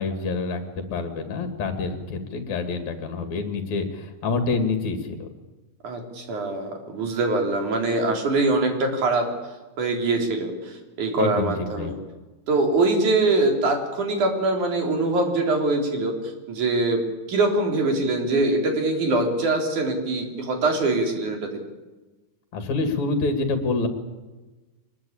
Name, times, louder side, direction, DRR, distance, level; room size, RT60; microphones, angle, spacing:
voice 1, 0.0-5.3 11.2-12.0 22.5-23.9, left 3 dB, 65° left, 7 dB, 3.5 m, -27 dB
voice 2, 5.8-9.3 9.8-12.0 12.5-16.1 16.5-17.0 17.3-21.6, right 2 dB, 75° right, 3 dB, 4.9 m, -23 dB
24.0 x 20.5 x 8.8 m, 1.2 s
omnidirectional pair, 3.5 m